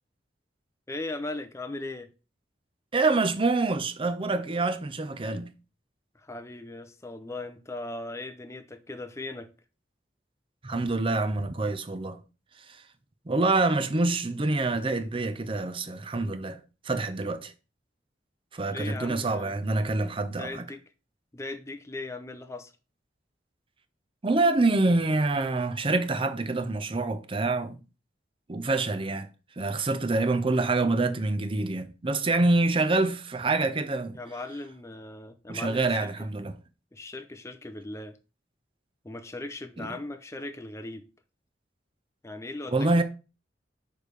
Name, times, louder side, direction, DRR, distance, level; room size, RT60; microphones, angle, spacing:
voice 1, 0.9-2.1 6.1-9.5 18.6-19.5 20.2-20.8 21.3-22.7 34.1-36.3 36.9-38.2 39.0-41.0 42.2-43.0, left 2 dB, 15° left, 0.5 m, -38 dB
voice 2, 2.9-5.5 10.6-12.2 13.3-16.6 16.8-17.5 18.5-20.7 24.2-27.8 28.5-29.3 29.6-34.2 35.5-36.6 39.8-40.0 42.7-43.0, right 2 dB, 30° right, 0.6 m, -26 dB
6.4 x 3.3 x 4.9 m
head